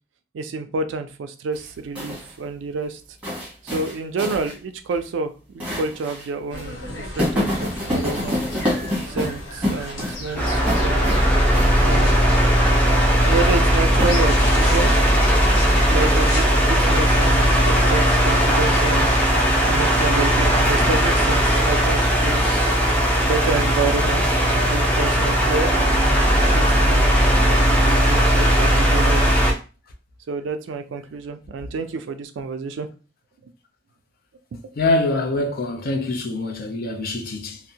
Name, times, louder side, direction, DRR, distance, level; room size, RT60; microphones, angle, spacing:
voice 1, 0.3-3.0 3.6-8.4 9.1-11.2 11.8-12.2 13.2-14.9 15.9-19.1 19.7-22.7 23.2-29.4 30.3-32.9 33.4-33.5 34.6-34.7 35.3-35.4, right 4 dB, 80° right, 0.3 m, -29 dB
sound 1, 1.5-2.3 3.2-4.5 4.9-5.0 5.6-6.3 6.5-6.6 7.2-10.3 10.7-11.2 11.5-11.9 14.0-14.6, left 1 dB, 10° right, 1.0 m, -27 dB
sound 2, 6.5-16.6, left 1 dB, 80° left, 0.9 m, -34 dB
sound 3, 10.4-29.5, equal, 10° left, 0.5 m, -18 dB
voice 2, 34.8-37.6, left 2 dB, 55° left, 0.5 m, -24 dB
2.5 x 2.0 x 2.7 m
head